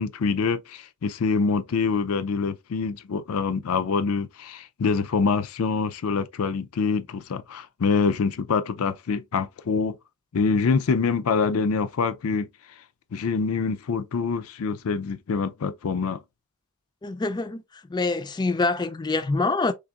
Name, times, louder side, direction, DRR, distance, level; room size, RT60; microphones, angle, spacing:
voice 1, 0.0-10.0 10.3-12.5 13.1-16.2, left 5 dB, 85° left, 0.4 m, -25 dB
voice 2, 17.0-17.6 17.9-19.7, left 3 dB, 20° left, 0.3 m, -25 dB
3.9 x 3.4 x 2.3 m
head